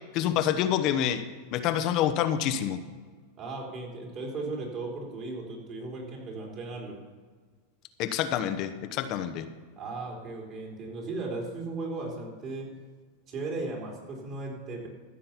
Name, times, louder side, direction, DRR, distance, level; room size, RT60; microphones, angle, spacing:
voice 1, 0.1-1.2 1.5-2.8 8.0-9.5, left 10 dB, 45° left, 10 dB, 1.0 m, -27 dB
voice 2, 3.4-7.0 9.8-12.7 13.3-14.9, right 3 dB, 40° right, -1 dB, 4.0 m, -36 dB
14.5 x 7.4 x 6.0 m, 1.5 s
supercardioid pair, 135°, 0 cm